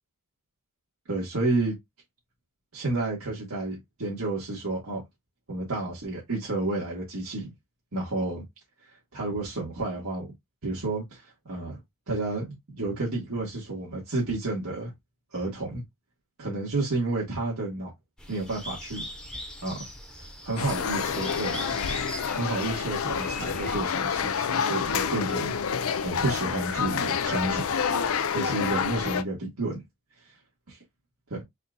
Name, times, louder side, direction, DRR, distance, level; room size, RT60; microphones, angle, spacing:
voice 1, 1.1-1.8 2.7-5.0 5.5-7.5 7.9-8.4 9.1-10.3 10.6-11.8 12.1-14.9 15.3-15.8 16.4-17.9 18.3-19.0 19.6-19.9 20.4-21.7 22.3-25.8 26.0-27.7 28.3-29.8 31.3-31.4, right 2 dB, 85° right, 1.8 m, -30 dB
sound 1, 18.2-23.8, left 1 dB, 5° left, 0.9 m, -40 dB
sound 2, 20.6-29.2, left 6 dB, 80° left, 0.5 m, -28 dB
4.3 x 2.5 x 3.7 m
head